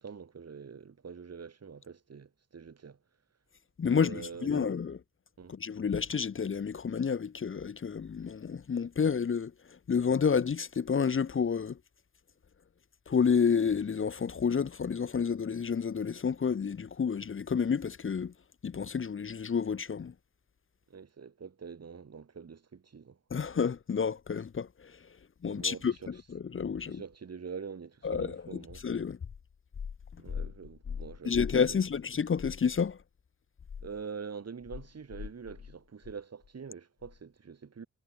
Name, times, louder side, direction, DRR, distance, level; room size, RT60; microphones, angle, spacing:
voice 1, 0.0-3.0 3.9-4.7 5.4-5.6 20.9-23.5 25.5-26.1 26.9-28.8 30.2-31.8 33.8-37.9, right 6 dB, 55° right, 1.2 m, -45 dB
voice 2, 3.8-5.0 5.5-11.8 13.1-18.3 18.6-20.1 23.3-25.0 25.4-27.0 28.0-29.2 31.2-33.0, left 6 dB, 45° left, 0.6 m, -30 dB
cardioid pair, 45°, 30 cm